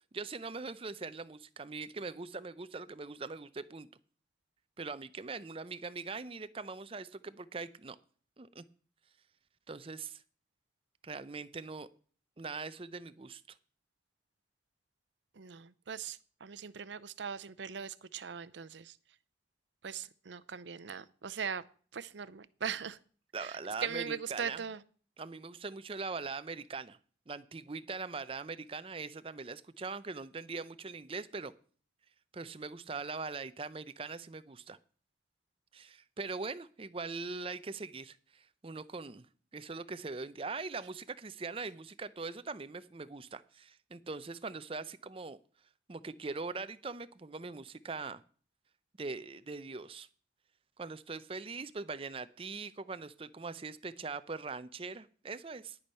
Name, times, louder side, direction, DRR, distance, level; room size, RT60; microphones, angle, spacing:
voice 1, 0.1-3.9 4.8-8.0 8.4-8.6 9.7-10.2 11.0-11.9 12.4-13.4 23.3-24.6 25.2-27.0 27.3-31.5 32.3-34.8 35.7-39.3 39.5-45.4 45.9-48.2 49.0-50.1 50.8-55.8, right 4 dB, 30° right, 14 dB, 0.5 m, -41 dB
voice 2, 15.4-18.9 19.8-21.6 21.9-23.0 23.4-24.8, right 7 dB, 80° right, 16 dB, 0.6 m, -40 dB
10.5 x 8.5 x 5.5 m, 0.43 s
head